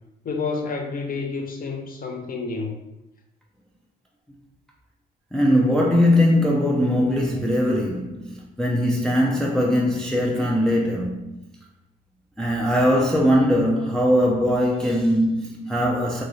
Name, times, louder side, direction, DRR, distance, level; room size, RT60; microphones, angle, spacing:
voice 1, 0.2-2.7, left 4 dB, 45° left, 0.6 m, -29 dB
voice 2, 5.3-11.3 12.4-16.2, equal, 5° left, 0.4 m, -20 dB
3.1 x 2.8 x 2.6 m
cardioid pair, 90°, 20 cm